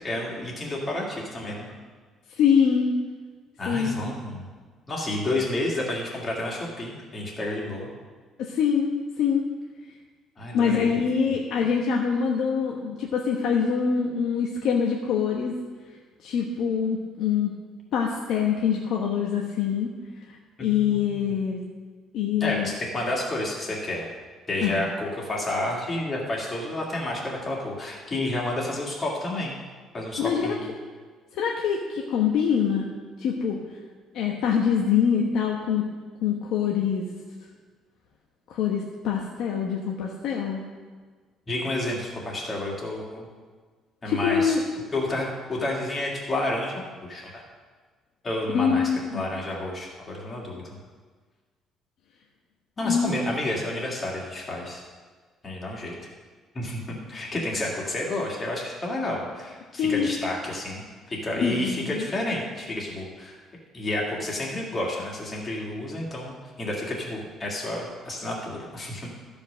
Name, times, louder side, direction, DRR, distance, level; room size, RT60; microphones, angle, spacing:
voice 1, 0.0-1.7 3.6-4.5 4.9-7.9 10.4-10.9 11.3-11.4 20.6-21.3 22.4-24.1 24.5-29.6 29.9-30.7 41.5-43.3 44.0-44.6 44.9-46.8 47.1-47.4 48.2-50.6 52.8-54.8 55.4-55.9 56.5-63.4 63.7-69.1, left 1 dB, 25° left, -2 dB, 2.2 m, -30 dB
voice 2, 2.3-2.9 3.7-4.0 8.4-8.9 9.2-9.4 10.5-15.5 16.2-17.5 17.9-19.9 20.3-21.6 22.1-22.7 24.6-24.8 30.2-30.6 31.3-32.9 33.2-33.6 34.1-35.9 36.2-37.1 38.5-40.6 44.1-44.6 48.5-49.3 52.8-53.1 59.8-60.1 61.4-62.1, left 7 dB, 60° left, -1 dB, 1.1 m, -24 dB
14.0 x 5.3 x 6.4 m, 1.5 s
cardioid pair, 175°, 0 cm